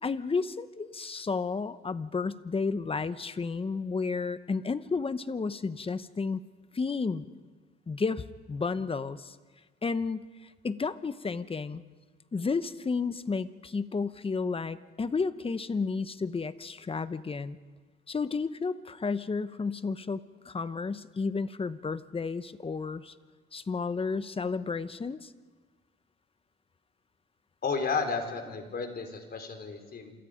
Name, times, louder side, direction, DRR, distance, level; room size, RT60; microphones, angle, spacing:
voice 1, 0.0-6.4 6.7-7.3 7.9-9.3 9.8-11.8 12.3-17.6 18.1-23.1 23.5-25.3, left 4 dB, 30° left, 13 dB, 1.1 m, -32 dB
voice 2, 27.6-30.1, left 5 dB, 50° left, 5 dB, 4.4 m, -32 dB
28.0 x 27.5 x 5.2 m, 1.4 s
cardioid pair, 90°, 20 cm